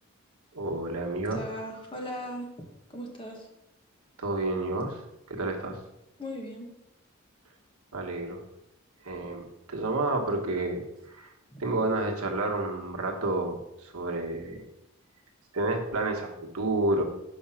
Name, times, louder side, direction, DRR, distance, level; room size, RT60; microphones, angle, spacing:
voice 1, 0.5-1.4 4.2-5.0 5.3-5.8 7.9-8.4 9.0-10.8 11.1-11.3 11.6-14.7 15.5-17.0, right 2 dB, 85° right, 2 dB, 1.2 m, -30 dB
voice 2, 1.3-2.5 2.9-3.5 6.2-6.7 11.5-11.6, equal, 25° left, 1 dB, 1.3 m, -38 dB
5.5 x 4.9 x 5.7 m, 0.86 s
head